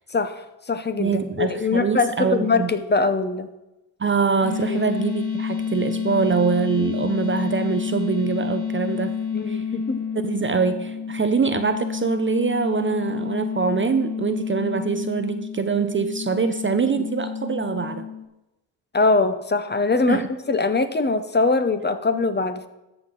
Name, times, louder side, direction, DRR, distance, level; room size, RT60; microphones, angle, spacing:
voice 1, 0.1-3.5 4.7-4.8 9.3-10.0 18.9-22.7, left 3 dB, 25° left, 10 dB, 0.8 m, -22 dB
voice 2, 1.0-2.7 4.0-9.2 9.5-9.6 10.2-18.0 20.1-20.3, right 5 dB, 25° right, 9 dB, 0.6 m, -24 dB
sound 1, 4.4-18.2, left 7 dB, 55° left, 1.7 m, -29 dB
13.5 x 5.7 x 3.9 m, 0.96 s
cardioid pair, 75°, 45 cm